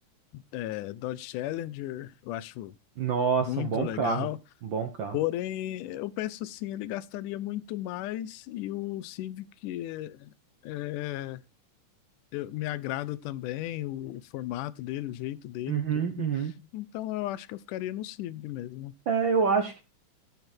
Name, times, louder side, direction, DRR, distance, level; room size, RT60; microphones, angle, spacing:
voice 1, 0.3-2.7 3.4-4.4 5.1-10.3 10.6-11.4 12.3-16.3 16.7-18.9, left 14 dB, 80° left, 2.1 m, -35 dB
voice 2, 3.0-4.3 4.6-5.2 15.7-16.5 19.1-19.8, right 6 dB, 75° right, 1.1 m, -27 dB
15.5 x 5.3 x 4.4 m
omnidirectional pair, 3.7 m